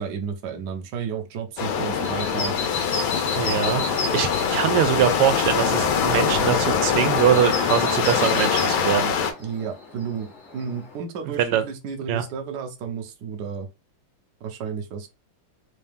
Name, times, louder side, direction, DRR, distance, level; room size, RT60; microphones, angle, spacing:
voice 1, 0.0-2.5 9.4-10.3 10.5-13.7 14.4-15.1, right 6 dB, 60° right, 1.2 m, -32 dB
sound 1, 1.6-9.3, left 7 dB, 70° left, 1.5 m, -23 dB
sound 2, 1.9-11.0, left 3 dB, 40° left, 1.1 m, -35 dB
voice 2, 3.4-9.1 11.4-11.6 12.1-12.2, right 10 dB, 85° right, 1.6 m, -23 dB
3.8 x 2.7 x 3.4 m
omnidirectional pair, 2.4 m